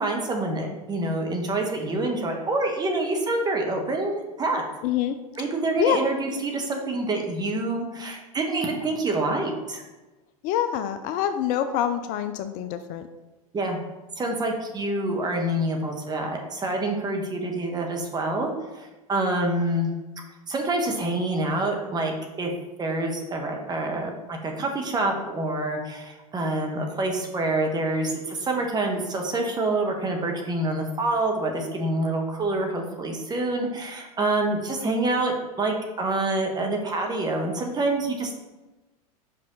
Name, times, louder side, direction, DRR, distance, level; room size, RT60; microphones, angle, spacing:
voice 1, 0.0-4.6 5.4-9.8 13.5-13.8 14.2-19.9 20.5-22.5 22.8-38.4, right 2 dB, 20° right, 2 dB, 1.3 m, -27 dB
voice 2, 4.8-5.2 5.8-6.0 10.4-13.1, left 10 dB, 45° left, 10 dB, 0.5 m, -25 dB
5.5 x 5.4 x 3.9 m, 1.1 s
hypercardioid pair, 95°, 19 cm